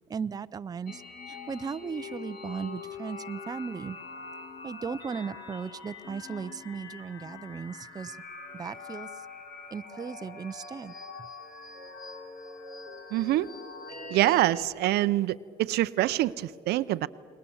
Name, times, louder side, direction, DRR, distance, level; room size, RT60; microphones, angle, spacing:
voice 1, 0.1-1.0 1.3-4.0 4.6-8.2 8.5-9.1 9.7-10.9, right 6 dB, 20° right, 12 dB, 0.5 m, -36 dB
sound 1, 0.9-14.6, left 4 dB, 60° left, 2.8 m, -44 dB
voice 2, 13.1-13.5 14.1-17.1, right 15 dB, 75° right, 16 dB, 0.6 m, -25 dB
29.5 x 20.5 x 7.1 m, 2.5 s
cardioid pair, 110°, 17 cm